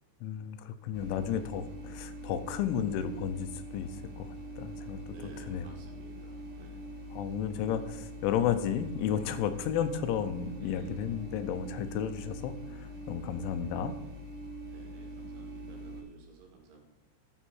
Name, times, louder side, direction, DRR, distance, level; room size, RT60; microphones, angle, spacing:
voice 1, 0.2-4.3 4.6-5.0 5.4-5.7 7.1-13.9, left 9 dB, 90° left, 10 dB, 3.1 m, -33 dB
sound 1, 0.9-16.0, right 1 dB, 50° right, 1.8 m, -43 dB
voice 2, 5.1-6.8 10.6-11.5 14.7-16.8, right 4 dB, 80° right, 2 dB, 3.9 m, -54 dB
11.0 x 6.6 x 4.5 m, 1.0 s
omnidirectional pair, 5.3 m